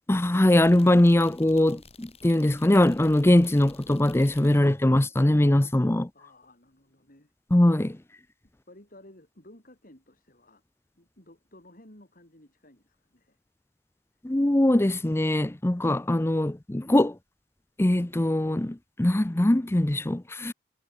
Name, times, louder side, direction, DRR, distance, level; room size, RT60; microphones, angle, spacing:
voice 1, 0.1-6.1 7.5-8.0 14.2-17.1 17.8-20.5, left 1 dB, 15° left, 0.6 m, -22 dB
sound 1, 0.6-4.8, left 3 dB, 35° left, 7.1 m, -52 dB
voice 2, 6.1-7.3 8.7-10.6 11.0-13.4, left 1 dB, 50° left, 7.4 m, -54 dB
head